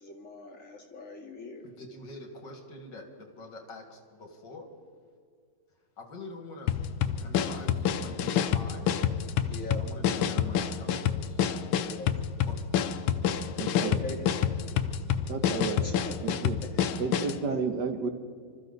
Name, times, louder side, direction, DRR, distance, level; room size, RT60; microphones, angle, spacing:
voice 1, 0.0-1.6 9.5-9.8 11.8-12.1 13.8-14.3 15.8-16.1 16.6-16.7 17.2-17.6, left 2 dB, 40° left, -1 dB, 2.5 m, -41 dB
voice 2, 1.6-4.7 6.0-6.7 7.2-8.9 9.7-11.4 11.7-12.5, left 2 dB, 65° left, 3 dB, 2.7 m, -45 dB
sound 1, 6.7-17.4, left 9 dB, 90° left, 1.5 m, -28 dB
voice 3, 13.6-14.0 15.3-15.9 16.2-16.7 17.0-18.1, right 5 dB, 60° right, 6 dB, 1.7 m, -32 dB
25.5 x 14.0 x 4.1 m, 2.2 s
omnidirectional pair, 2.1 m